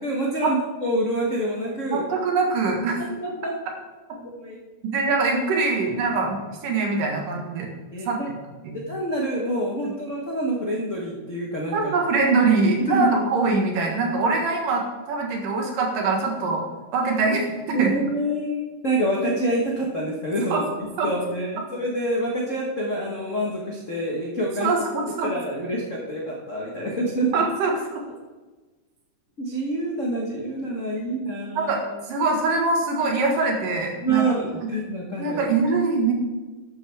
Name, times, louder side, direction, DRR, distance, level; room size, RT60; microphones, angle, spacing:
voice 1, 0.0-2.1 3.0-3.5 4.1-4.6 7.9-8.3 8.7-11.9 12.9-13.1 17.7-20.6 21.0-24.7 25.2-27.3 29.4-31.8 34.0-35.4, right 1 dB, 60° left, -2 dB, 0.7 m, -27 dB
voice 2, 1.9-3.0 4.8-7.7 8.1-8.2 8.6-8.8 9.8-9.9 11.7-16.6 16.9-17.9 20.5-20.6 21.0-21.1 24.6-25.3 27.3-28.0 31.5-31.8 32.1-34.2 35.2-36.1, right 3 dB, 80° right, 1 dB, 3.3 m, -23 dB
12.0 x 9.0 x 3.5 m, 1.3 s
omnidirectional pair, 3.8 m